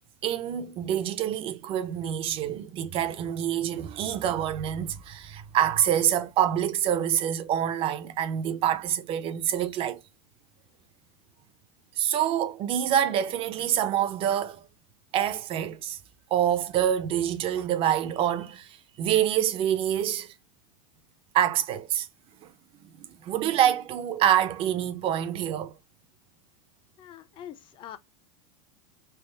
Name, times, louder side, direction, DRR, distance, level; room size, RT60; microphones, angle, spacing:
voice 1, 0.2-10.0 12.0-14.6 15.1-16.0 16.3-20.3 21.3-22.1 23.0-25.7, right 10 dB, 35° right, 0.5 m, -26 dB
voice 2, 27.0-28.0, left 10 dB, 30° left, 0.5 m, -44 dB
3.4 x 2.0 x 4.3 m
supercardioid pair, 130°, 16 cm